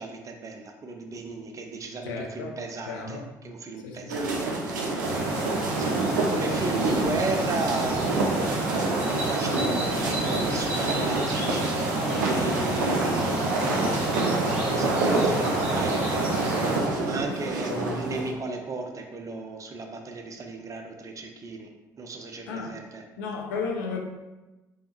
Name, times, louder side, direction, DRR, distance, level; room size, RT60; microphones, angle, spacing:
voice 1, 0.0-11.8 12.1-13.3 13.7-14.0 14.4-21.7 22.0-23.0, right 3 dB, 35° right, 0.6 m, -35 dB
voice 2, 2.0-2.5 2.9-3.3 3.8-4.2 17.7-18.1 22.5-22.8 23.2-24.0, left 4 dB, 70° left, 0.6 m, -33 dB
sound 1, 4.1-18.3, right 2 dB, 75° right, 0.5 m, -28 dB
sound 2, 5.0-16.8, right 2 dB, 60° right, 0.9 m, -29 dB
3.4 x 3.0 x 2.9 m
figure-of-eight pair, 50°, 10 cm